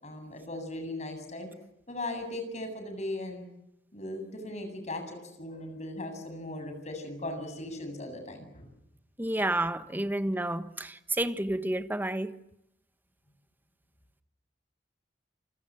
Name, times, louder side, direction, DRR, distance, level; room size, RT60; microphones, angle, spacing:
voice 1, 0.0-1.5 1.9-3.5 3.9-8.7, left 1 dB, 40° left, 7.9 m, -38 dB
voice 2, 9.2-12.4, right 1 dB, 10° right, 1.3 m, -30 dB
28.0 x 26.0 x 7.7 m
head